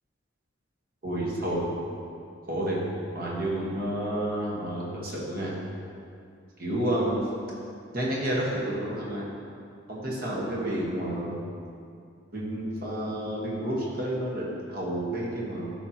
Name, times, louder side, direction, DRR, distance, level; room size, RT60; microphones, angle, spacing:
voice 1, 1.0-1.7 2.5-2.8 3.1-5.5 6.6-7.2 7.9-9.2 9.9-11.4 12.3-15.7, right 1 dB, 50° right, -5 dB, 1.5 m, -30 dB
12.0 x 4.3 x 3.0 m, 2.4 s
head